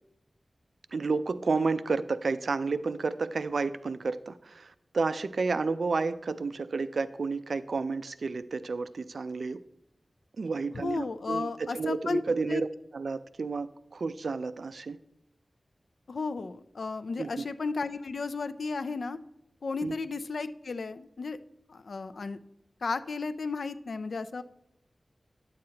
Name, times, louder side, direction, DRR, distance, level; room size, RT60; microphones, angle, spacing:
voice 1, 0.9-9.6 10.4-12.7 12.9-15.0 17.2-17.4 19.8-20.0, right 4 dB, 80° right, 14 dB, 0.3 m, -31 dB
voice 2, 10.7-12.2 12.5-12.6 16.1-19.2 19.6-21.4 21.7-22.4 22.8-24.4, left 4 dB, 80° left, 12 dB, 0.4 m, -34 dB
9.6 x 7.7 x 2.8 m, 0.82 s
wide cardioid pair, 80°, 0 cm